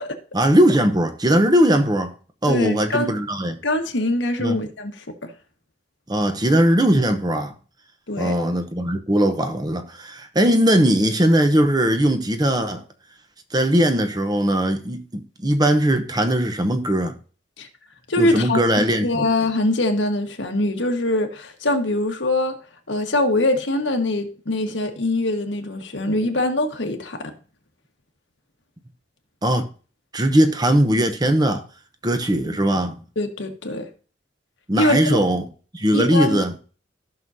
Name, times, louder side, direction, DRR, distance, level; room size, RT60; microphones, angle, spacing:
voice 1, 0.3-2.1 2.4-3.6 4.4-4.6 6.1-7.5 8.2-12.8 13.5-17.1 18.2-19.3 29.4-29.7 30.1-31.6 32.0-33.0 34.7-35.4 35.7-36.5, right 1 dB, 20° right, 0.8 m, -19 dB
voice 2, 2.5-3.1 3.6-5.3 8.1-8.3 17.6-17.7 18.1-22.6 22.9-27.3 32.4-32.6 33.1-33.9 34.8-35.2 35.9-36.4, left 2 dB, 85° left, 1.5 m, -23 dB
14.5 x 6.2 x 2.7 m
head